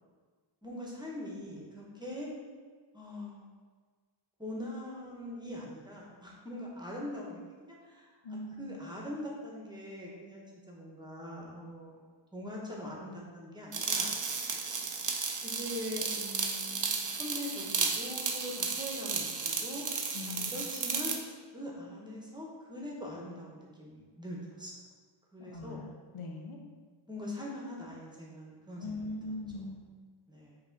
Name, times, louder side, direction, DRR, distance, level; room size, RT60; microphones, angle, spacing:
voice 1, 0.6-2.3 2.9-3.5 4.4-7.4 7.7-14.1 15.4-19.8 20.4-21.2 21.5-24.7 25.3-25.9 27.1-29.1 29.5-29.8 30.3-30.6, left 1 dB, 10° right, -3 dB, 1.0 m, -42 dB
voice 2, 8.2-8.8 20.1-20.6 25.5-26.6 28.8-29.8, left 2 dB, 90° left, 1 dB, 0.9 m, -41 dB
sound 1, 13.7-21.2, right 5 dB, 40° right, 0.6 m, -34 dB
5.9 x 3.1 x 5.2 m, 1.5 s
wide cardioid pair, 130°, 49 cm